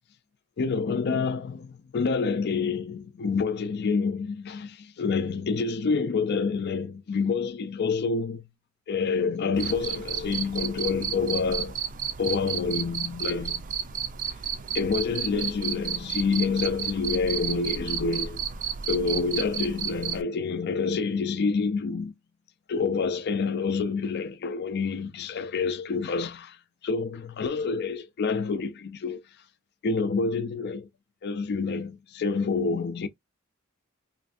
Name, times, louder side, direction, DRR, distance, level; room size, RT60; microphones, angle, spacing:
voice 1, 0.6-8.5 8.9-11.8 12.2-13.7 14.7-18.4 18.9-22.2 22.7-26.6 26.8-29.2 29.8-30.9 31.2-33.1, left 4 dB, 50° left, 0.4 m, -28 dB
Cricket, 9.6-20.2, right 8 dB, 40° right, 0.4 m, -32 dB
3.3 x 2.5 x 2.4 m
head